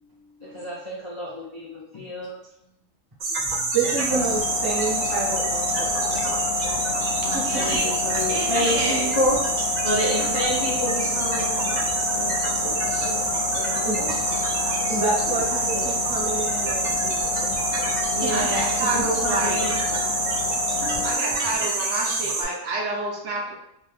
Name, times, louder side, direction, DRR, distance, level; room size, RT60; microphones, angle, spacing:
voice 1, 0.1-2.3 3.4-3.7 7.2-9.4 9.8-13.2 13.5-14.2 14.5-14.9 15.5-15.9 17.8-19.7 20.8-21.6, left 1 dB, 50° left, -7 dB, 0.3 m, -30 dB
sound 1, 3.2-22.4, right 3 dB, 90° right, 0.3 m, -26 dB
voice 2, 3.7-6.2 7.3-7.4 13.8-14.0 14.9-17.6, right 4 dB, 20° right, -6 dB, 0.6 m, -29 dB
sound 2, 4.1-21.2, left 8 dB, 80° left, 1.0 m, -30 dB
voice 3, 7.2-9.2 18.0-19.9 20.2-20.4 21.0-23.5, right 2 dB, 70° right, -2 dB, 0.9 m, -30 dB
2.6 x 2.1 x 3.1 m, 0.78 s
omnidirectional pair, 1.4 m